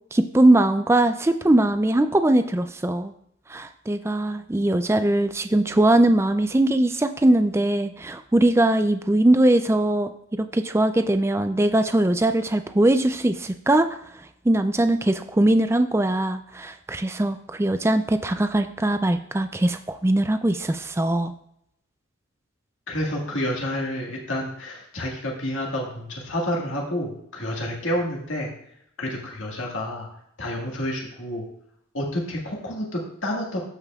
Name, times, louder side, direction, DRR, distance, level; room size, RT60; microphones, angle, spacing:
voice 1, 0.1-3.1 3.5-10.1 10.4-13.9 14.5-21.3, right 1 dB, 15° right, 9 dB, 0.4 m, -21 dB
voice 2, 22.9-28.5 29.0-30.1 30.4-31.4 31.9-33.6, left 1 dB, 85° left, -1 dB, 1.8 m, -29 dB
14.0 x 5.3 x 2.4 m, 0.72 s
head